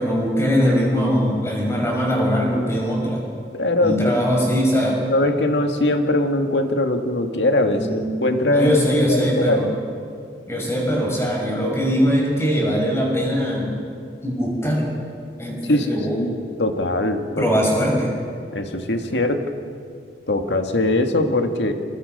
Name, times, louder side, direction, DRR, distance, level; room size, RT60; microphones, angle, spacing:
voice 1, 0.0-3.2 3.8-5.0 7.7-8.1 8.5-9.7 10.5-13.8 14.2-14.9 15.4-16.2 17.4-18.1, equal, 15° left, -2 dB, 6.0 m, -21 dB
voice 2, 3.5-4.1 5.1-9.7 15.7-17.5 18.5-19.5 20.3-21.7, left 1 dB, 75° left, 5 dB, 1.9 m, -21 dB
28.5 x 22.5 x 5.4 m, 2.3 s
head